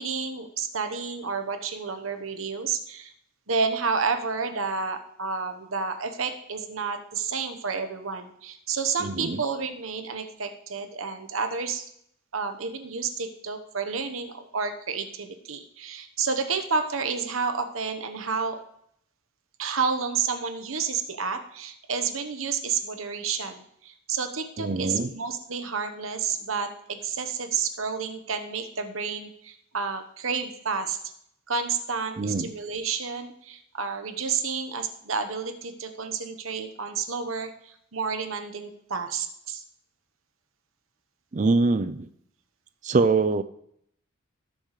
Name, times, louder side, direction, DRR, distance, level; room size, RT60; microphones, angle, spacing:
voice 1, 0.0-3.1 3.5-11.9 12.3-18.6 19.6-31.0 31.5-39.6, right 5 dB, 85° right, 8 dB, 1.1 m, -30 dB
voice 2, 9.0-9.4 24.6-25.1 32.2-32.5 41.3-42.1 42.8-43.4, right 3 dB, 35° right, 12 dB, 0.5 m, -24 dB
18.0 x 7.1 x 3.2 m, 0.71 s
head